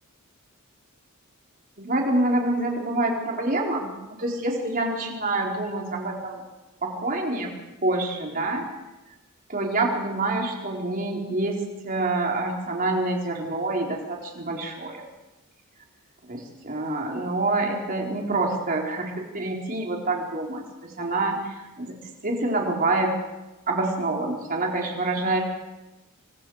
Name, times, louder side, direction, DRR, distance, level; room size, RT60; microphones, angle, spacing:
voice 1, 1.8-3.9 4.2-6.4 6.8-7.5 7.8-8.7 9.5-11.6 11.8-15.0 16.3-22.0 22.2-23.1 23.7-25.4, right 2 dB, 40° right, 0 dB, 4.5 m, -26 dB
29.0 x 24.5 x 5.0 m, 1.1 s
head